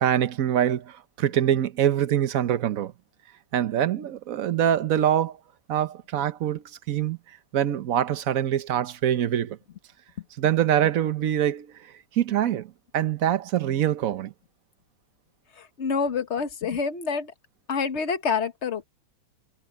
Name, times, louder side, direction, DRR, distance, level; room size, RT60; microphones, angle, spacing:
voice 1, 0.0-2.9 3.5-5.4 5.7-7.2 7.5-9.6 10.4-11.7 12.2-14.3, right 10 dB, 60° right, 0.9 m, -24 dB
voice 2, 15.6-17.3 17.7-18.8, left 5 dB, 40° left, 1.3 m, -27 dB
omnidirectional pair, 2.3 m